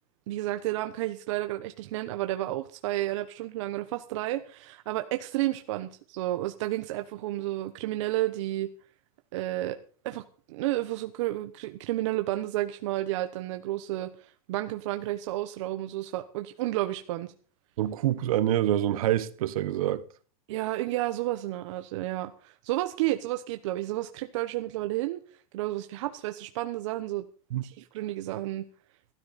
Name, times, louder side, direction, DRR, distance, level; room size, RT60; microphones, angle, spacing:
voice 1, 0.3-8.7 9.3-9.8 10.0-17.3 20.5-25.2 25.5-27.3 27.6-28.7, right 16 dB, 50° right, 1.1 m, -31 dB
voice 2, 17.8-20.0 27.5-27.6, right 12 dB, 70° right, 1.4 m, -26 dB
15.0 x 13.0 x 4.2 m
supercardioid pair, 170°, 19 cm